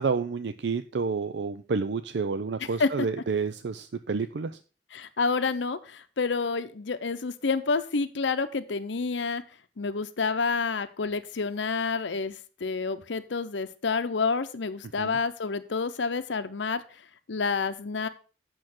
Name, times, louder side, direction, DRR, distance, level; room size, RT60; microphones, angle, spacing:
voice 1, 0.0-4.5 15.0-15.2, right 5 dB, 70° right, 11 dB, 0.5 m, -29 dB
voice 2, 2.6-3.1 4.9-9.4 9.8-17.0 17.3-18.1, left 4 dB, 85° left, 10 dB, 0.7 m, -29 dB
8.6 x 6.3 x 5.9 m, 0.37 s
head